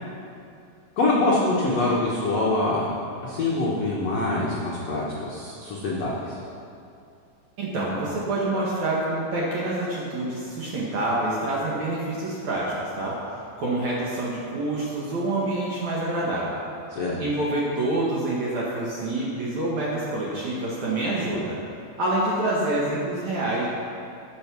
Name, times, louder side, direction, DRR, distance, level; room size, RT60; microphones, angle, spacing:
voice 1, 1.0-6.4 16.9-17.2, left 2 dB, 75° left, -5 dB, 1.5 m, -25 dB
voice 2, 7.6-13.2 13.6-16.6 17.2-21.6 22.0-23.7, right 2 dB, 60° right, -6 dB, 2.1 m, -27 dB
12.5 x 7.8 x 6.1 m, 2.5 s
omnidirectional pair, 5.1 m